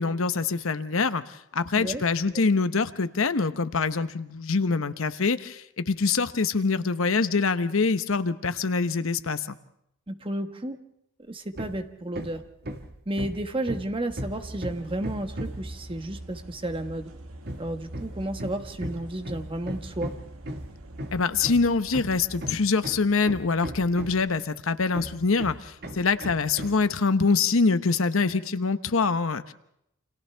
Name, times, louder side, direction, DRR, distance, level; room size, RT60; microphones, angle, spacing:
voice 1, 0.0-9.6 21.1-29.5, left 4 dB, 70° left, 11 dB, 0.9 m, -25 dB
voice 2, 10.1-10.8 11.3-12.4 13.1-17.1 17.6-20.1, right 1 dB, 25° right, 6 dB, 1.3 m, -32 dB
Hammer, 11.5-11.8 12.1-15.7 17.4-24.4 24.9-26.9, equal, 50° right, 1.6 m, -37 dB
sound 1, 14.2-22.6, right 1 dB, 85° right, 1.7 m, -44 dB
29.0 x 26.0 x 3.4 m, 0.77 s
head